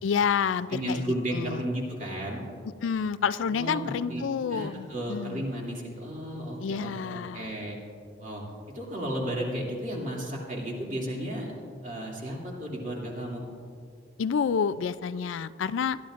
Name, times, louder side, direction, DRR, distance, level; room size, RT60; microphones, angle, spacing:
voice 1, 0.0-1.6 2.8-5.5 6.6-7.5 14.2-16.0, left 6 dB, 75° left, 14 dB, 0.4 m, -29 dB
voice 2, 0.7-2.4 3.5-7.8 8.2-8.4 8.7-11.5 11.8-13.5, equal, 40° right, -2 dB, 2.6 m, -33 dB
20.5 x 13.0 x 2.5 m, 2.3 s
head